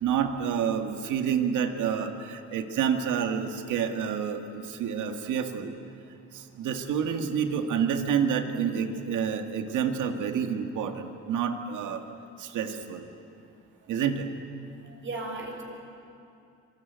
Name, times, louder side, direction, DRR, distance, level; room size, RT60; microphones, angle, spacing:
voice 1, 0.0-5.7 6.3-12.0 12.4-13.1 13.9-14.3, right 7 dB, 85° right, 5 dB, 2.0 m, -28 dB
voice 2, 14.8-15.6, right 2 dB, 40° right, 1 dB, 6.6 m, -36 dB
25.5 x 20.0 x 9.4 m, 2.6 s
cardioid pair, 90°, 30 cm